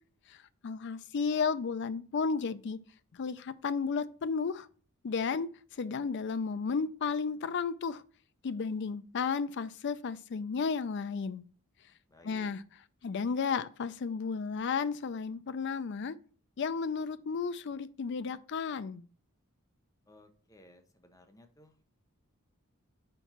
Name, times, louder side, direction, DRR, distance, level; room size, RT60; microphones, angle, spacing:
voice 1, 0.3-2.8 3.1-4.7 5.0-8.0 8.4-11.4 12.2-12.6 13.0-16.2 16.6-19.0, left 5 dB, 55° left, 0.4 m, -33 dB
voice 2, 12.1-12.5 20.1-21.8, left 1 dB, 15° left, 0.7 m, -58 dB
4.6 x 4.5 x 5.4 m
head